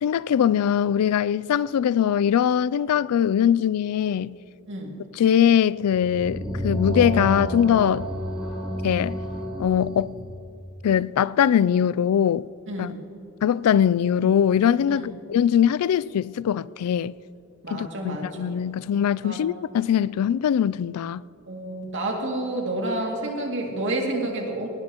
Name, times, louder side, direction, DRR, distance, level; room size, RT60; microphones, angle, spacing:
voice 1, 0.0-4.4 5.2-8.1 8.8-9.2 9.6-10.1 10.8-12.5 12.8-12.9 13.4-17.1 17.7-21.2, left 9 dB, 85° left, 0.3 m, -21 dB
sound 1, 5.8-10.5, equal, 5° right, 3.6 m, -30 dB
voice 2, 12.7-13.0 14.9-15.1 17.6-18.5 19.2-19.4 21.5-24.7, right 1 dB, 55° right, 2.4 m, -29 dB
19.0 x 18.5 x 3.0 m
head